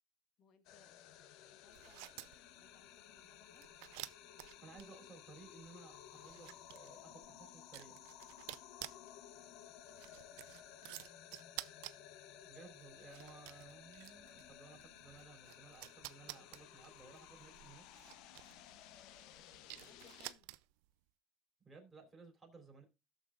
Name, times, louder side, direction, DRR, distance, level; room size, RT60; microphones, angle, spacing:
voice 1, 0.4-0.9 1.5-3.7 10.0-11.2 19.7-20.5, left 6 dB, 50° left, 1.3 m, -69 dB
sound 1, 0.7-20.3, left 11 dB, 70° left, 0.7 m, -57 dB
sound 2, 1.7-20.9, right 21 dB, 90° right, 0.4 m, -54 dB
voice 2, 4.6-8.0 12.4-17.8 21.6-22.8, right 4 dB, 15° right, 3.4 m, -58 dB
17.5 x 6.7 x 2.5 m
cardioid pair, 125°, 0 cm